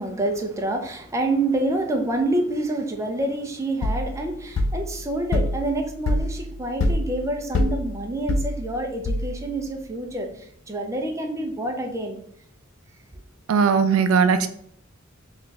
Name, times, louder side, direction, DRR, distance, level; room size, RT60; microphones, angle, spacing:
voice 1, 0.0-10.3 10.7-12.2, right 2 dB, 15° right, 3 dB, 0.5 m, -27 dB
sound 1, 3.8-9.6, left 1 dB, 70° left, 0.4 m, -26 dB
voice 2, 13.5-14.5, right 5 dB, 80° right, 9 dB, 0.3 m, -18 dB
3.3 x 2.4 x 3.9 m, 0.67 s
head